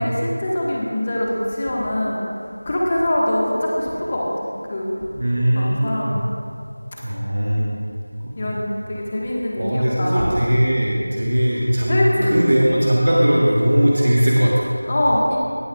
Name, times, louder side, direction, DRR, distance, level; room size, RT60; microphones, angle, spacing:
voice 1, 0.0-2.3 2.6-5.1 5.5-6.2 7.5-7.7 8.4-10.3 11.9-12.4 14.8-15.4, left 1 dB, 25° left, -4 dB, 1.4 m, -23 dB
voice 2, 5.2-6.2 7.0-7.7 8.2-8.6 9.6-14.7, equal, 50° right, -4 dB, 1.3 m, -19 dB
17.5 x 9.4 x 2.4 m, 2.3 s
figure-of-eight pair, 175°, 0 cm